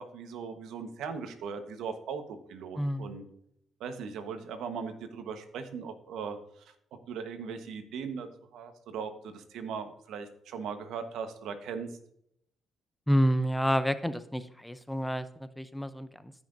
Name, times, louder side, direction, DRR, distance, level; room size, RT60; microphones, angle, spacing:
voice 1, 0.0-3.2 3.8-6.6 7.1-11.9, right 6 dB, 80° right, 8 dB, 1.1 m, -39 dB
voice 2, 2.8-3.1 13.1-16.3, equal, 5° left, 12 dB, 0.6 m, -29 dB
14.5 x 5.8 x 2.6 m, 0.72 s
cardioid pair, 90°, 0 cm